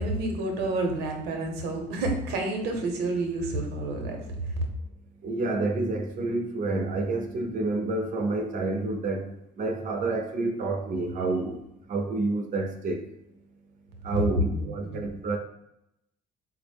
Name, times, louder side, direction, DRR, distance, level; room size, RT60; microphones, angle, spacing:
voice 1, 0.0-4.6 14.1-15.1, right 1 dB, 90° right, 3 dB, 0.7 m, -29 dB
voice 2, 5.2-9.3 9.6-11.6 11.9-13.0 14.0-15.4, right 2 dB, 50° right, 4 dB, 0.5 m, -29 dB
3.6 x 2.0 x 3.3 m, 0.84 s
cardioid pair, 110°, 17 cm